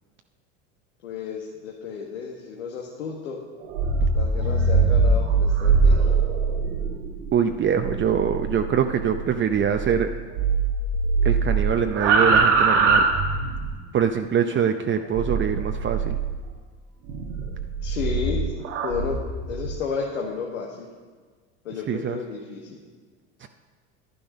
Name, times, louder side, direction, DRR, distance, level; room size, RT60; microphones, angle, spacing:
voice 1, 1.0-3.4 4.1-6.2 17.8-19.2 19.5-20.9 21.6-22.8, left 5 dB, 90° left, -1 dB, 1.5 m, -32 dB
sound 1, 3.6-10.1 10.3-13.8 15.2-16.4 17.1-19.7, right 4 dB, 85° right, 1.5 m, -22 dB
voice 2, 7.3-10.1 11.2-13.1 13.9-16.2 21.9-22.2 23.4-23.5, right 7 dB, 35° right, 6 dB, 0.7 m, -24 dB
11.0 x 10.0 x 5.4 m, 1.5 s
hypercardioid pair, 80°, 35 cm